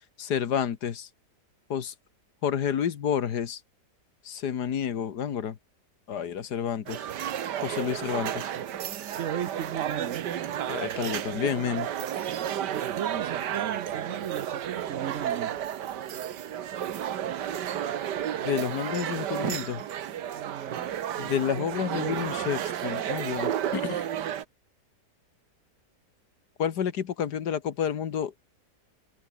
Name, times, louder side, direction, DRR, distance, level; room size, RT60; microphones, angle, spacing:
voice 1, 0.2-1.1 1.7-1.9 2.4-3.6 4.3-5.6 6.1-7.1 7.6-8.5 10.7-11.9 18.4-19.8 21.2-24.0 26.6-28.3, left 8 dB, 75° left, 1.8 m, -30 dB
sound 1, 6.9-24.4, right 10 dB, 80° right, 1.7 m, -32 dB
voice 2, 9.1-10.2 12.7-15.6 20.3-21.0 21.6-21.7 21.9-22.2, right 9 dB, 60° right, 0.9 m, -36 dB
omnidirectional pair, 1.8 m